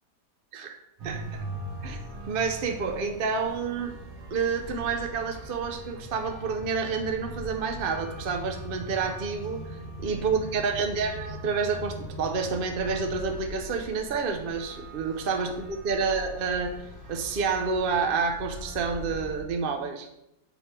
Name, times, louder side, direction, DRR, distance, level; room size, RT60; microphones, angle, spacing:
sound 1, 1.0-19.4, right 1 dB, 70° right, 2.1 m, -40 dB
voice 1, 2.3-3.9 4.3-9.8 10.0-16.7 17.1-20.1, right 5 dB, 50° right, 4 dB, 0.7 m, -29 dB
8.9 x 3.3 x 6.0 m, 0.84 s
omnidirectional pair, 1.8 m